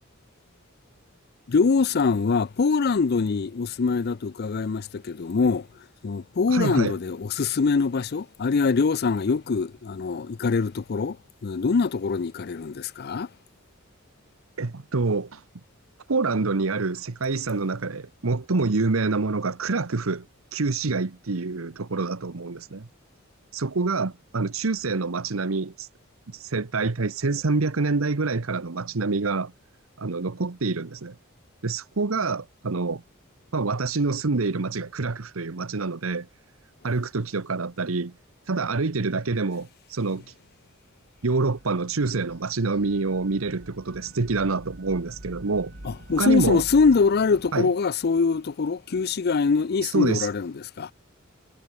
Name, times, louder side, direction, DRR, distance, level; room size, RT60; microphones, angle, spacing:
voice 1, 1.5-5.7 6.0-11.2 11.4-13.3 45.8-50.9, left 4 dB, 50° left, 0.5 m, -23 dB
voice 2, 6.5-7.0 14.6-15.4 16.1-20.3 20.5-22.9 23.5-25.9 26.3-29.5 30.0-31.1 31.6-33.0 33.5-36.3 36.8-38.1 38.5-40.2 41.2-45.7 46.2-46.6 47.5-47.7 49.8-50.3, right 3 dB, 85° right, 1.0 m, -26 dB
sound 1, 41.1-47.5, right 1 dB, 60° right, 3.4 m, -45 dB
head